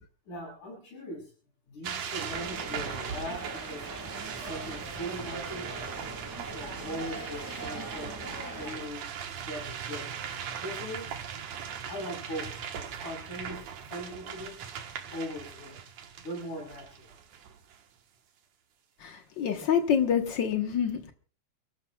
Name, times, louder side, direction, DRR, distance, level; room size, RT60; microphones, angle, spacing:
voice 1, 0.3-1.3 1.7-3.9 4.3-5.9 6.2-9.0 9.4-10.1 10.6-11.1 11.9-14.6 15.1-15.8 16.2-17.1, equal, 85° left, -5 dB, 8.0 m, -40 dB
sound 1, 1.8-17.8, right 8 dB, 65° right, 2.3 m, -39 dB
sound 2, 2.3-8.8, right 2 dB, 25° right, 0.4 m, -41 dB
voice 2, 19.0-21.1, left 8 dB, 60° left, 5 dB, 1.2 m, -27 dB
29.0 x 13.5 x 2.3 m, 0.40 s
omnidirectional pair, 3.5 m